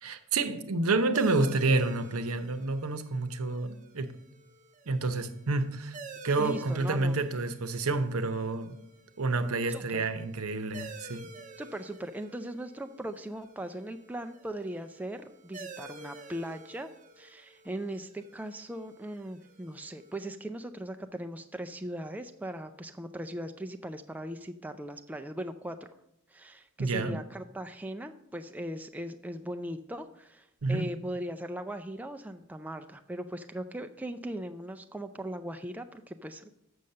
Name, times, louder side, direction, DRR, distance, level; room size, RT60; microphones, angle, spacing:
voice 1, 0.0-4.2 4.9-6.0 6.2-8.8 9.2-11.3 26.8-27.2 30.6-30.9, right 3 dB, 80° right, 0.8 m, -29 dB
sound 1, 1.1-20.3, right 3 dB, 35° right, 0.7 m, -50 dB
voice 2, 6.4-7.2 9.7-10.1 11.6-16.9 17.2-25.8 26.3-36.5, right 1 dB, 5° right, 0.3 m, -39 dB
7.0 x 6.4 x 6.6 m
head